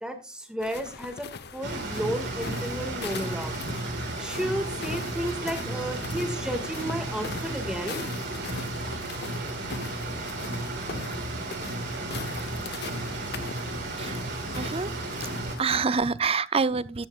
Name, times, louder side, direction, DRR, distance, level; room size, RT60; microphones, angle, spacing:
voice 1, 0.0-3.5 4.2-8.0, right 1 dB, 5° right, 2.0 m, -33 dB
sound 1, 0.6-15.8, left 5 dB, 55° left, 0.9 m, -42 dB
sound 2, 1.6-15.6, right 1 dB, 60° right, 4.3 m, -33 dB
voice 2, 14.6-14.9 15.2-15.3 15.6-17.1, right 5 dB, 30° right, 0.5 m, -26 dB
15.0 x 10.5 x 2.4 m
head